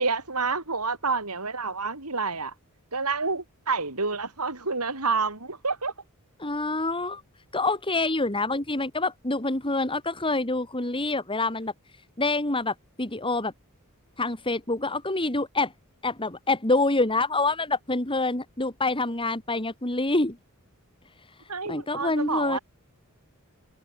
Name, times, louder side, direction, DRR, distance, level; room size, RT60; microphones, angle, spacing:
voice 1, 0.0-2.5 2.9-5.9 21.5-22.6, right 4 dB, 90° right, 7.6 m, -28 dB
voice 2, 6.4-7.2 7.5-11.7 12.2-13.5 14.2-15.7 16.0-20.4 21.4-22.6, left 2 dB, 25° left, 3.4 m, -26 dB
head